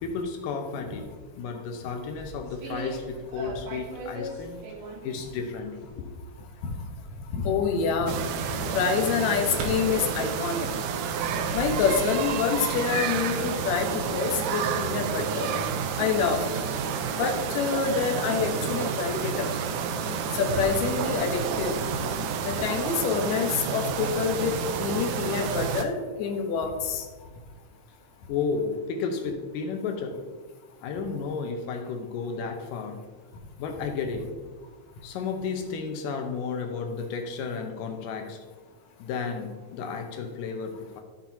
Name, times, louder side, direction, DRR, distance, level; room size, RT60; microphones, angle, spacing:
voice 1, 0.0-1.1 1.4-4.6 5.0-6.1 28.3-30.3 30.8-33.0 33.6-34.3 35.0-38.4 39.0-41.0, left 5 dB, 85° left, 4 dB, 2.5 m, -33 dB
sound 1, 1.9-17.8, right 2 dB, 70° right, 2.4 m, -43 dB
voice 2, 7.3-8.2 8.6-10.7 11.5-15.5 16.0-16.4 17.2-19.5 20.4-21.8 22.4-27.1, left 6 dB, 70° left, 2 dB, 2.1 m, -27 dB
sound 2, 8.1-25.9, right 6 dB, 90° right, 2.2 m, -30 dB
14.0 x 5.8 x 2.8 m, 1.4 s
omnidirectional pair, 3.7 m